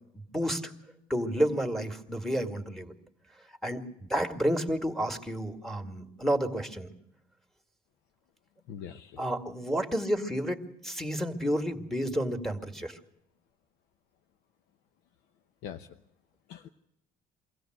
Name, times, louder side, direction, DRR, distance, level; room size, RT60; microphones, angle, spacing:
voice 1, 0.1-0.7 1.1-2.9 3.6-6.9 9.2-13.0, equal, ahead, 4 dB, 2.2 m, -30 dB
voice 2, 8.7-9.3 15.6-16.0 16.5-16.7, left 8 dB, 85° left, 7 dB, 0.9 m, -43 dB
24.0 x 16.0 x 8.0 m, 0.81 s
cardioid pair, 110°, 17 cm